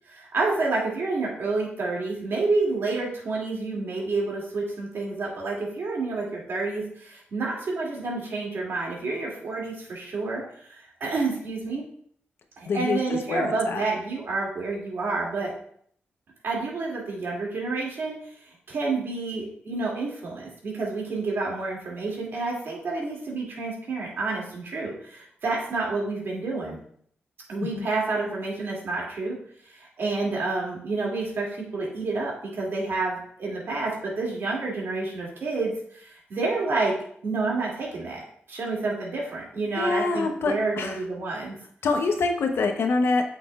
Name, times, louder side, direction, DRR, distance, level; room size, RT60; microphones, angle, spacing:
voice 1, 0.1-11.8 12.6-15.5 16.4-18.1 18.7-26.8 27.5-29.4 29.7-36.9 37.2-41.5, right 3 dB, 65° right, -3 dB, 2.6 m, -29 dB
voice 2, 12.7-13.8 27.6-27.9 39.8-41.0 41.8-43.2, left 3 dB, 70° left, 5 dB, 0.9 m, -25 dB
8.0 x 6.0 x 2.4 m, 0.62 s
cardioid pair, 80°, 4 cm